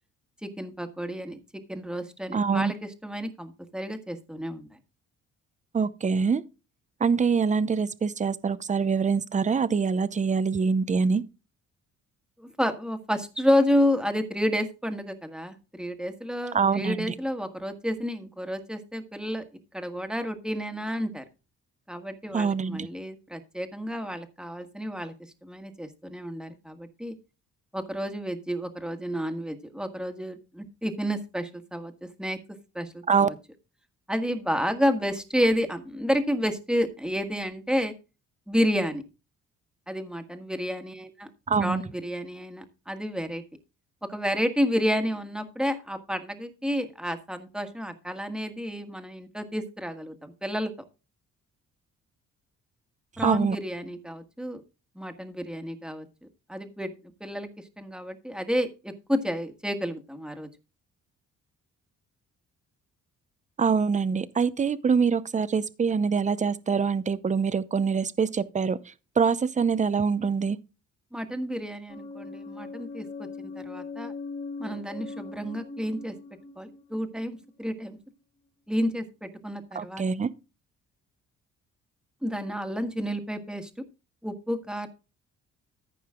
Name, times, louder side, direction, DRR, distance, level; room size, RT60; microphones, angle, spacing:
voice 1, 0.4-4.7 12.4-19.4 19.7-21.2 21.9-25.1 25.4-27.1 27.7-32.4 32.7-33.3 34.1-37.9 38.5-39.0 39.9-41.3 41.6-43.4 44.0-50.7 53.2-54.6 54.9-56.1 56.5-56.9 57.2-57.5 57.8-60.5 71.1-74.1 74.6-76.1 76.6-78.0 78.7-80.0 82.2-83.7 84.2-84.9, equal, 5° right, 1.6 m, -30 dB
voice 2, 2.3-2.7 5.7-6.4 7.0-11.2 16.5-17.1 22.3-22.9 33.1-33.3 41.5-41.8 53.2-53.6 63.6-70.6 79.7-80.3, right 5 dB, 25° right, 0.7 m, -24 dB
sound 1, 71.9-77.7, left 4 dB, 20° left, 1.5 m, -40 dB
14.5 x 5.4 x 3.7 m
cardioid pair, 90°, 30 cm